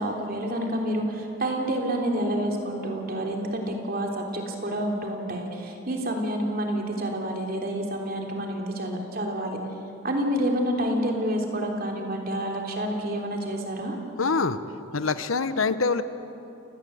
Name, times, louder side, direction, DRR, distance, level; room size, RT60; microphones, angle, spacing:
voice 1, 0.0-9.6 10.0-14.0, right 1 dB, 45° right, 1 dB, 3.4 m, -28 dB
voice 2, 14.2-14.6 14.9-16.0, left 4 dB, 85° left, 12 dB, 1.1 m, -24 dB
29.5 x 19.0 x 7.9 m, 2.9 s
head